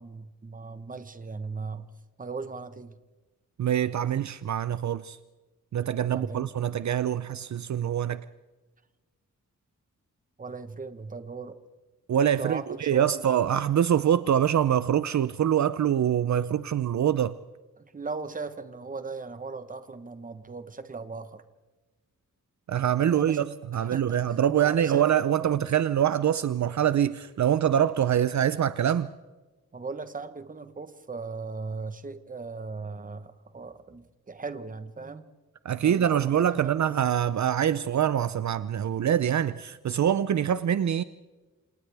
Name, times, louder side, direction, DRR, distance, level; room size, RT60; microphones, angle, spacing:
voice 1, 0.0-1.9 2.2-3.0 6.0-6.5 10.4-11.6 12.3-13.1 17.8-21.4 22.9-24.2 24.6-25.1 25.4-25.6 29.7-35.2 35.8-37.0, right 4 dB, 25° right, 1.1 m, -38 dB
voice 2, 3.6-5.2 5.7-8.2 12.1-17.3 22.7-29.1 35.6-41.0, right 9 dB, 60° right, 0.6 m, -25 dB
29.0 x 27.0 x 3.5 m
wide cardioid pair, 180°, 32 cm